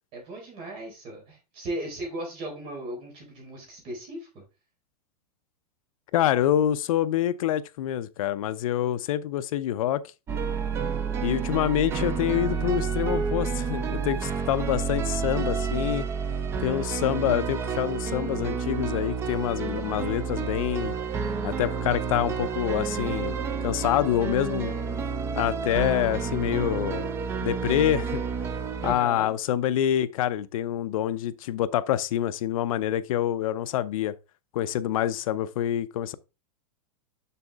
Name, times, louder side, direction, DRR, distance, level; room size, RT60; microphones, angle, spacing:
voice 1, 0.1-4.4 28.8-29.3, right 1 dB, 30° right, 4.0 m, -37 dB
voice 2, 6.1-10.0 11.2-16.0 16.6-20.9 21.4-24.7 25.3-27.1 27.4-28.2 28.8-34.1 34.5-36.2, left 11 dB, 60° left, 0.6 m, -26 dB
sound 1, 10.3-29.0, right 6 dB, 15° right, 0.5 m, -30 dB
6.9 x 6.2 x 3.5 m
supercardioid pair, 170°, 20 cm